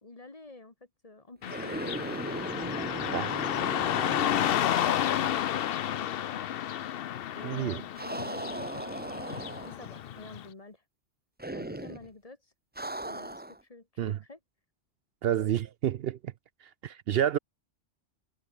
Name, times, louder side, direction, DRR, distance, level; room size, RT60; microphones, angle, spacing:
voice 1, 0.0-2.0 2.7-3.5 7.3-8.8 9.6-10.8 11.5-12.5 13.0-14.4, left 3 dB, 30° left, 1.7 m, -49 dB
Car passing by / Traffic noise roadway noise, 1.4-10.4, left 11 dB, 65° left, 0.8 m, -31 dB
sound 1, 1.4-5.6 5.8-5.9 8.0-10.0 11.4-12.1 12.8-13.6, right 1 dB, 10° right, 0.7 m, -38 dB
voice 2, 7.4-7.8 14.0-14.2 15.2-16.3 16.6-17.4, right 10 dB, 65° right, 0.7 m, -29 dB
omnidirectional pair, 1.2 m